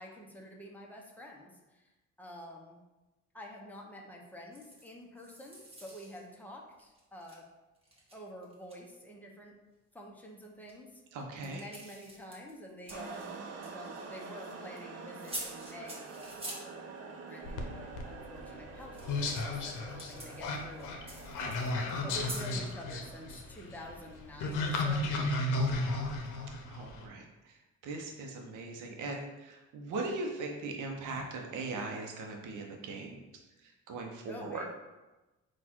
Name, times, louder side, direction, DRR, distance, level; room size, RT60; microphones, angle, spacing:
voice 1, 0.0-1.9 2.2-2.8 3.3-7.4 8.1-9.5 9.9-11.0 11.4-13.3 13.7-21.2 22.0-25.1 34.3-34.6, equal, 5° left, -1 dB, 0.8 m, -48 dB
sound 1, 4.5-4.9 5.2-6.2 6.8-7.4 7.8-8.8 10.6-10.7 11.2-14.8 15.2-16.6 18.8-22.5, right 1 dB, 20° right, 1.3 m, -47 dB
voice 2, 11.1-11.7 21.4-22.0 26.7-27.5 27.8-33.2 33.9-34.6, right 3 dB, 85° right, 2 dB, 0.8 m, -40 dB
sound 2, 12.9-24.4, right 4 dB, 55° right, 0.6 m, -47 dB
sound 3, 17.4-27.1, left 2 dB, 85° left, 0.7 m, -34 dB
4.2 x 2.4 x 4.3 m, 1.1 s
cardioid pair, 90°, 30 cm